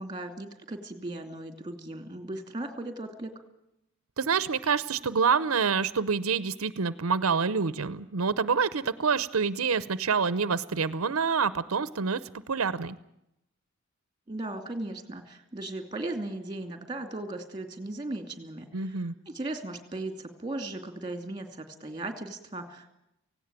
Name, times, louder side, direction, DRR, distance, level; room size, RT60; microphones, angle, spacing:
voice 1, 0.0-3.3 14.3-22.9, right 2 dB, 20° right, 7 dB, 2.6 m, -37 dB
voice 2, 4.2-12.2 12.5-13.0 18.7-19.1, right 5 dB, 90° right, 16 dB, 0.7 m, -27 dB
17.5 x 17.0 x 8.9 m, 0.82 s
head